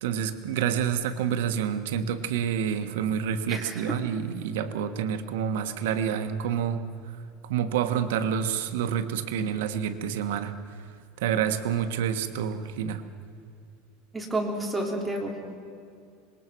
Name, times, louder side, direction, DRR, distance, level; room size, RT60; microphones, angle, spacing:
voice 1, 0.0-6.8 7.4-10.5 11.2-13.0, right 8 dB, 85° right, 8 dB, 1.4 m, -28 dB
voice 2, 3.5-3.9 14.1-15.6, right 1 dB, 5° right, -1 dB, 3.3 m, -31 dB
26.0 x 21.0 x 6.2 m, 2.4 s
supercardioid pair, 165°, 0 cm